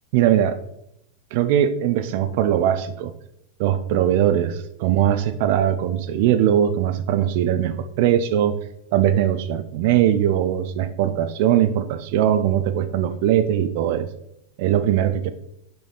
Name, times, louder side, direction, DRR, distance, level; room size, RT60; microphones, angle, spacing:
voice 1, 0.1-0.6 1.3-3.1 3.6-8.5 8.9-14.1 14.6-15.3, right 10 dB, 50° right, 11 dB, 0.7 m, -20 dB
9.4 x 6.8 x 4.0 m, 0.78 s
figure-of-eight pair, 90°, 0 cm